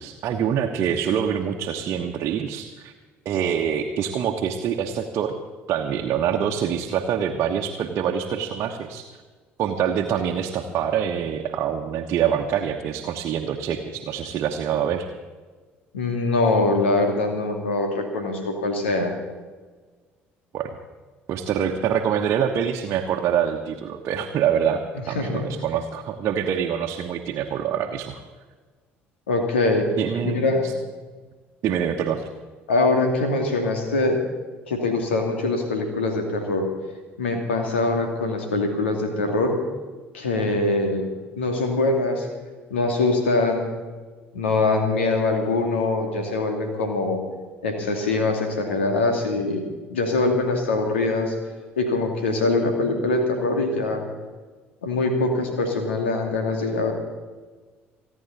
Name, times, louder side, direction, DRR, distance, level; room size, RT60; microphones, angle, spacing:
voice 1, 0.0-2.9 3.2-5.4 5.7-9.1 9.6-15.1 20.5-20.8 21.3-24.8 25.1-28.2 30.0-30.7 31.6-32.3, right 8 dB, 50° right, 2 dB, 1.2 m, -25 dB
voice 2, 15.9-19.1 25.0-25.5 29.3-29.9 30.2-30.7 32.7-34.2 34.7-36.7 37.2-39.6 40.1-41.0 41.4-42.3 42.7-43.7 44.3-47.2 47.6-49.6 49.9-51.3 51.8-54.0 54.8-56.9, left 2 dB, 75° left, 4 dB, 2.3 m, -23 dB
29.0 x 9.9 x 4.1 m, 1.4 s
figure-of-eight pair, 55°, 6 cm